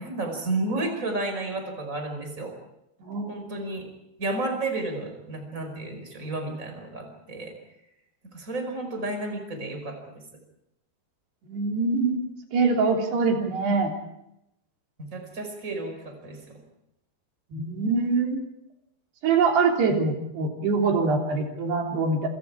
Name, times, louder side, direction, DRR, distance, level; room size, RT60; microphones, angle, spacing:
voice 1, 0.0-2.5 3.3-3.9 4.2-7.6 8.3-10.2 15.1-16.6, right 2 dB, 20° right, 4 dB, 5.3 m, -32 dB
voice 2, 3.0-3.4 11.4-12.3 12.5-13.9 17.5-18.4 19.2-22.3, right 4 dB, 85° right, 1 dB, 5.5 m, -24 dB
28.5 x 26.5 x 4.9 m, 0.83 s
omnidirectional pair, 4.6 m